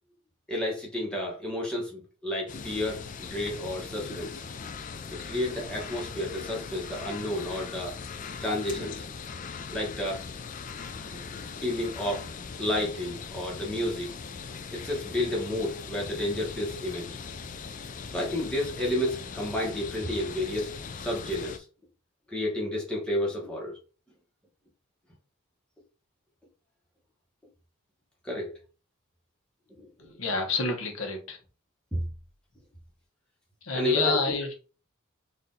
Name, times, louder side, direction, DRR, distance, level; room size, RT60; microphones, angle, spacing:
voice 1, 0.5-4.4 5.1-8.0 8.4-9.1 9.7-10.2 11.3-12.3 12.6-14.1 14.7-17.1 18.1-21.6 22.3-23.7 28.2-28.6 29.7-29.9 31.9-32.0 33.7-34.4, left 1 dB, 5° left, 1.3 m, -31 dB
sound 1, 2.5-21.6, left 5 dB, 35° left, 0.4 m, -40 dB
voice 2, 30.0-31.4 33.6-34.5, left 3 dB, 75° left, 1.1 m, -29 dB
4.2 x 2.6 x 3.9 m
head